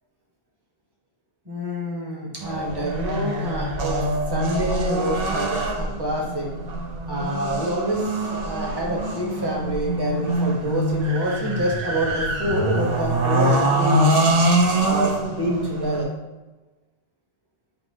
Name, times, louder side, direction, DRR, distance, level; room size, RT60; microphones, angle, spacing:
voice 1, 1.4-6.5 7.1-14.2 14.8-16.1, equal, 25° right, -3 dB, 1.0 m, -27 dB
sound 1, 2.4-16.0, right 1 dB, 65° right, 0.9 m, -24 dB
5.3 x 2.0 x 4.5 m, 1.2 s
omnidirectional pair, 1.1 m